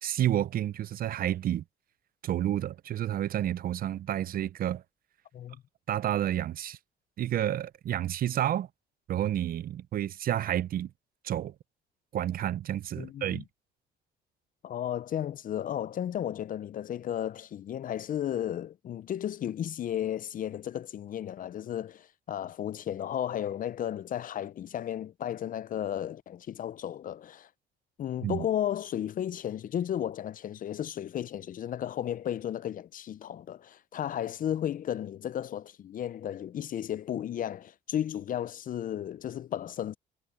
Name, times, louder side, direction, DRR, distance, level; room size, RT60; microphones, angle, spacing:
voice 1, 0.0-1.6 2.2-4.8 5.9-6.8 7.2-8.7 9.1-10.9 11.2-11.5 12.1-13.4 28.2-28.5, right 11 dB, 50° right, 0.5 m, -30 dB
voice 2, 13.0-13.4 14.6-27.5 28.0-39.9, left 10 dB, 45° left, 0.5 m, -34 dB
cardioid pair, 110°, 19 cm